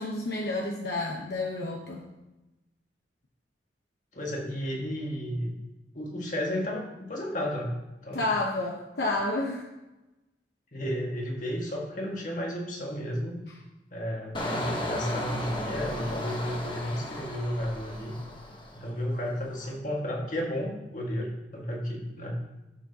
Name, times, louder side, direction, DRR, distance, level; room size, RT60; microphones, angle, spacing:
voice 1, 0.0-2.0 8.1-9.7, left 2 dB, 70° left, -2 dB, 1.0 m, -30 dB
voice 2, 4.1-5.6 5.9-7.7 8.0-8.3 10.7-13.4 13.9-18.1 18.7-22.4, equal, 45° left, -1 dB, 1.8 m, -32 dB
Engine, 14.3-19.0 19.4-19.7, left 1 dB, 25° left, 1.1 m, -35 dB
13.0 x 7.4 x 2.9 m, 1.0 s
head